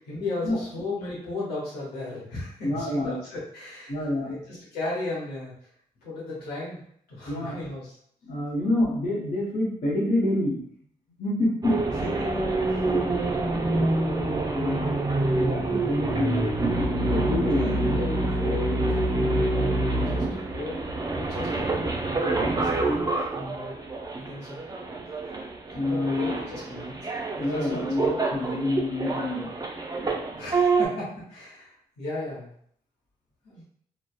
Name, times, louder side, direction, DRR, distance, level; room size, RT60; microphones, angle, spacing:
voice 1, 0.0-5.5 6.0-8.0 12.2-12.8 13.1-13.3 17.3-23.8 24.2-24.6 25.8-27.1 27.4-28.2 30.3-32.5 33.4-33.6, left 2 dB, 85° left, -6 dB, 0.9 m, -36 dB
voice 2, 2.6-3.1 3.9-4.3 7.3-7.6 8.2-10.6 11.2-11.8 12.8-13.1 14.5-15.1 15.4-18.0 25.7-26.3 27.4-29.5, left 1 dB, 55° left, -3 dB, 0.9 m, -27 dB
sound 1, 11.6-30.9, right 2 dB, 25° right, 0.5 m, -27 dB
2.5 x 2.1 x 2.3 m, 0.64 s
supercardioid pair, 45°, 17 cm